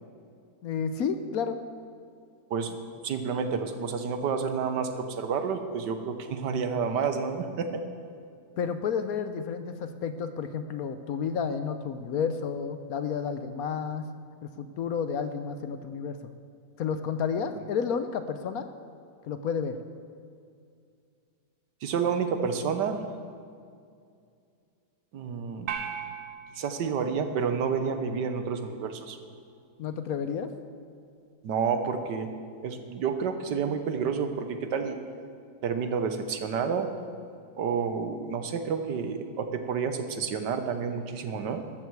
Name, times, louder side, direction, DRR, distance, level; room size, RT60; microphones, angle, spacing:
voice 1, 0.6-1.6 8.6-14.1 14.4-16.2 16.8-18.7 19.2-19.8 29.8-30.5, left 6 dB, 65° left, 10 dB, 1.0 m, -31 dB
voice 2, 3.0-7.8 21.8-23.0 25.1-25.7 26.6-29.2 31.4-32.3 32.6-35.0 35.6-36.9 37.6-41.6, right 6 dB, 80° right, 8 dB, 1.6 m, -29 dB
sound 1, 25.7-28.2, right 7 dB, 65° right, 1.3 m, -39 dB
13.5 x 13.5 x 4.7 m, 2.3 s
omnidirectional pair, 1.8 m